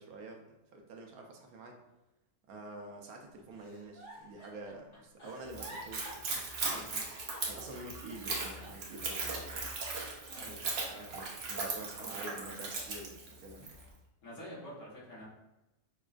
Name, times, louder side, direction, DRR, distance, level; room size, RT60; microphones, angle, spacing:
voice 1, 0.0-1.8 2.5-6.9 7.5-9.6 11.1-13.7, right 2 dB, 80° right, 2 dB, 1.1 m, -48 dB
Giggle, 3.5-9.9 10.3-11.2 11.7-12.8 13.3-13.7, right 1 dB, 25° left, 0.9 m, -53 dB
Splash splatter / Trickle dribble, 5.5-13.8, right 3 dB, 55° right, 0.8 m, -38 dB
voice 2, 10.3-11.2 12.0-12.1 14.2-15.3, equal, 60° left, -7 dB, 1.6 m, -48 dB
5.2 x 2.3 x 2.4 m, 0.95 s
omnidirectional pair, 1.5 m